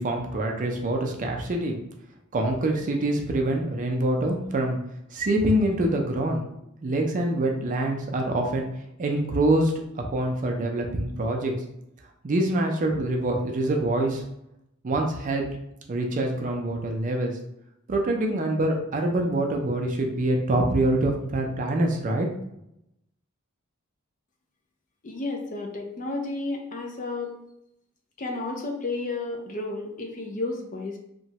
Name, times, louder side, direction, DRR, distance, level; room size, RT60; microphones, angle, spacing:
voice 1, 0.0-1.8 2.3-4.8 5.1-6.4 6.8-8.6 9.0-11.5 12.2-14.2 14.8-15.5 15.9-17.3 17.9-22.3, right 1 dB, 40° right, 2 dB, 0.4 m, -25 dB
voice 2, 25.0-27.3 28.2-31.0, left 2 dB, 40° left, 2 dB, 0.4 m, -32 dB
2.9 x 2.2 x 2.7 m, 0.81 s
head